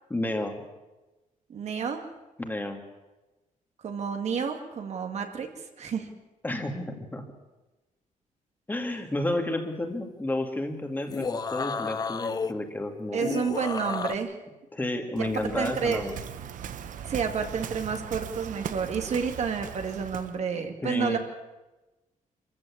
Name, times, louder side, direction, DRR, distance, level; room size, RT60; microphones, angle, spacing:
voice 1, 0.1-0.6 2.4-2.8 6.4-7.2 8.7-13.2 14.7-16.2 20.6-21.2, left 1 dB, 15° left, 4 dB, 2.2 m, -31 dB
voice 2, 1.5-2.0 3.8-5.5 5.8-6.1 13.1-14.4 15.2-15.3 15.6-16.0 17.1-21.2, right 6 dB, 55° right, 5 dB, 2.2 m, -30 dB
sound 1, 11.0-12.5 13.2-14.1, left 5 dB, 30° left, 0.7 m, -31 dB
Waves surf, 15.2-20.4, right 9 dB, 70° right, 1.2 m, -39 dB
25.5 x 14.5 x 8.6 m, 1.1 s
wide cardioid pair, 155°, 14 cm